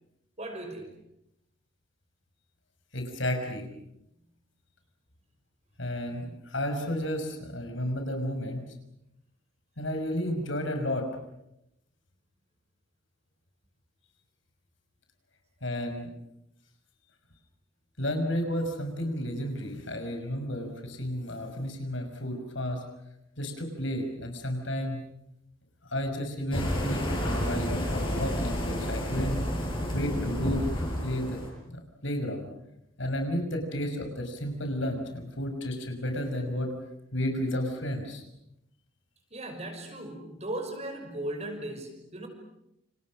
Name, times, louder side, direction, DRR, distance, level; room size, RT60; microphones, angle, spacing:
voice 1, 0.4-0.9 39.3-42.3, right 1 dB, 30° right, 5 dB, 6.0 m, -37 dB
voice 2, 2.9-3.7 5.8-8.6 9.8-11.1 15.6-16.1 18.0-22.8 23.4-25.0 25.9-29.4 29.9-31.4 31.7-32.5 33.0-36.7 37.1-38.2, equal, 65° left, 5 dB, 6.0 m, -32 dB
sound 1, 26.5-31.5, equal, 25° left, 7.3 m, -30 dB
29.5 x 29.5 x 6.4 m, 0.82 s
head